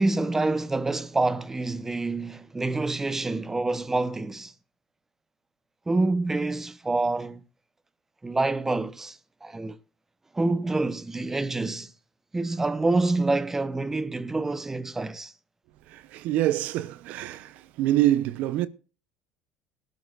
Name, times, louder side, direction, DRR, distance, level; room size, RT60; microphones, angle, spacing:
voice 1, 0.0-4.5 5.9-7.4 8.2-9.8 10.3-11.9 12.3-15.3, right 2 dB, 15° right, 1.0 m, -27 dB
voice 2, 15.9-18.7, right 14 dB, 65° right, 0.8 m, -26 dB
19.5 x 12.0 x 2.5 m
supercardioid pair, 95°, 3 cm